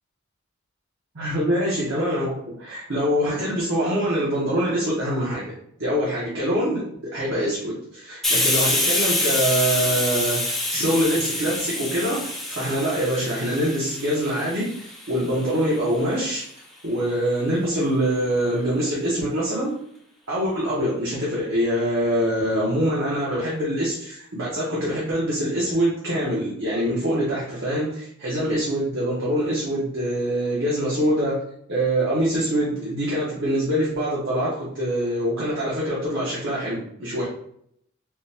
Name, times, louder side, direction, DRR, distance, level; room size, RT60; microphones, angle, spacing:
voice 1, 1.1-5.5 5.8-16.4 16.8-19.7 20.3-31.4 31.7-37.3, equal, 60° right, -6 dB, 0.9 m, -24 dB
Hiss, 8.2-15.6, left 1 dB, ahead, 0.7 m, -26 dB
3.7 x 2.2 x 2.7 m, 0.69 s
head